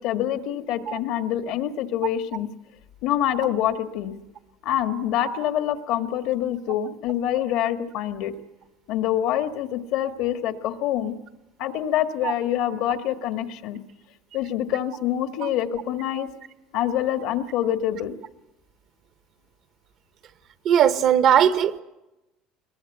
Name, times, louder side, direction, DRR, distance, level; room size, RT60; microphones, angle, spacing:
voice 1, 0.0-2.5 3.0-4.1 4.6-8.3 8.9-11.1 11.6-13.8 14.3-16.3 16.7-18.1, left 11 dB, 70° left, 8 dB, 1.6 m, -26 dB
voice 2, 20.6-21.8, right 9 dB, 50° right, 12 dB, 1.0 m, -18 dB
21.0 x 21.0 x 8.0 m, 1.0 s
cardioid pair, 135°, 0 cm